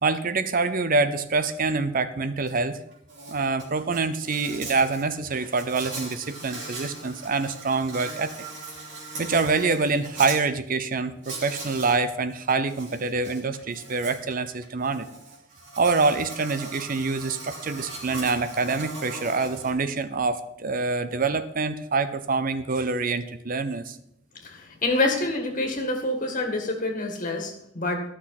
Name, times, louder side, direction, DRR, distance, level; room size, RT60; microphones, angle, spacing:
voice 1, 0.0-2.8 3.3-8.3 9.2-15.1 15.8-24.0, right 4 dB, 50° right, 12 dB, 0.6 m, -26 dB
Insect, 2.5-2.6 2.9-10.4 11.2-12.0 12.3-19.7, right 2 dB, 70° right, 3.1 m, -39 dB
voice 2, 24.3-28.0, left 2 dB, 45° left, 2 dB, 2.0 m, -27 dB
12.0 x 6.2 x 5.9 m, 0.74 s
head